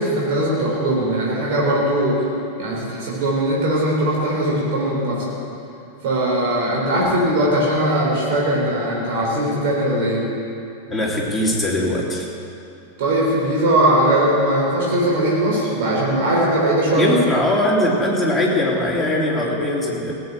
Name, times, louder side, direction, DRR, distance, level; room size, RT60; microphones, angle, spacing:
voice 1, 0.0-2.3 2.6-5.4 6.0-10.3 13.0-17.1, right 1 dB, 50° right, -4 dB, 4.0 m, -20 dB
voice 2, 10.9-12.3 17.0-20.1, left 1 dB, 5° left, -6 dB, 3.4 m, -20 dB
17.0 x 7.8 x 8.8 m, 2.6 s
figure-of-eight pair, 90°, 0 cm